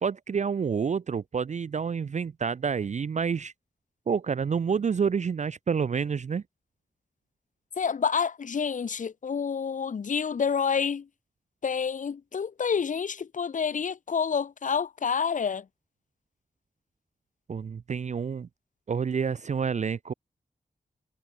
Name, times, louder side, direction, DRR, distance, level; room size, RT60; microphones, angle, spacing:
voice 1, 0.0-3.5 4.1-6.4 17.5-18.5 18.9-20.1, right 6 dB, 45° right, 0.4 m, -28 dB
voice 2, 7.8-11.0 11.6-15.6, left 6 dB, 55° left, 0.6 m, -28 dB
cardioid pair, 40°, 16 cm